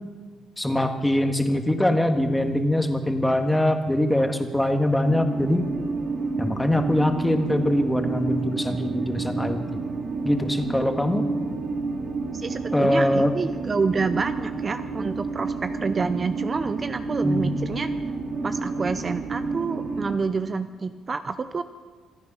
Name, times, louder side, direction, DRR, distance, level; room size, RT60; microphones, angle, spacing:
voice 1, 0.6-5.7 6.4-9.8 10.2-11.3 12.7-13.3 17.2-17.6, left 1 dB, 10° left, 5 dB, 1.8 m, -23 dB
sound 1, 5.0-20.2, right 3 dB, 55° right, 2.7 m, -30 dB
voice 2, 12.3-17.9 18.4-21.6, right 4 dB, 35° right, 10 dB, 0.6 m, -28 dB
26.0 x 9.5 x 5.7 m, 1.4 s
cardioid pair, 90°, 0 cm